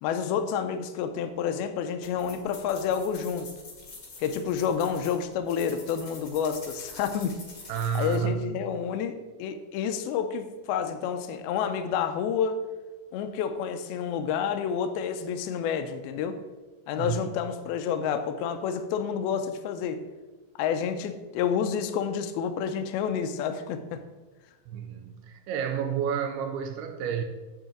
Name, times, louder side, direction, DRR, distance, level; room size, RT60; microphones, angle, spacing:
voice 1, 0.0-3.5 4.2-7.3 8.0-12.6 13.1-16.4 16.9-20.0 20.6-24.0, left 7 dB, 80° left, 8 dB, 2.3 m, -29 dB
sound 1, 2.0-8.2, left 3 dB, 55° left, 1.2 m, -46 dB
voice 2, 7.7-8.5 17.0-17.2 24.7-27.2, right 7 dB, 80° right, 6 dB, 2.4 m, -30 dB
9.2 x 7.2 x 3.8 m, 1.2 s
omnidirectional pair, 4.8 m